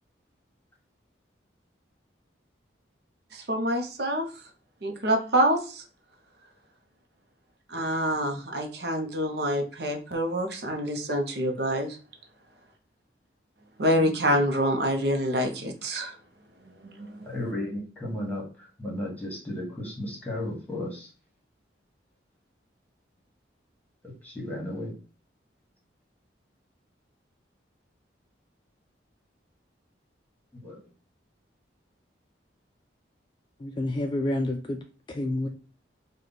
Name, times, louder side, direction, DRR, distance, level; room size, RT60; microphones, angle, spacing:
voice 1, 3.3-4.2 4.8-5.8 7.7-12.0 13.8-16.2 16.8-17.4, equal, 60° right, 3 dB, 0.7 m, -26 dB
voice 2, 17.2-18.4 18.8-21.1 24.2-24.9 30.6-30.8, left 1 dB, 10° left, -2 dB, 1.3 m, -34 dB
voice 3, 33.6-34.8 35.1-35.5, left 1 dB, 25° left, 4 dB, 0.3 m, -28 dB
4.9 x 2.2 x 3.9 m, 0.38 s
head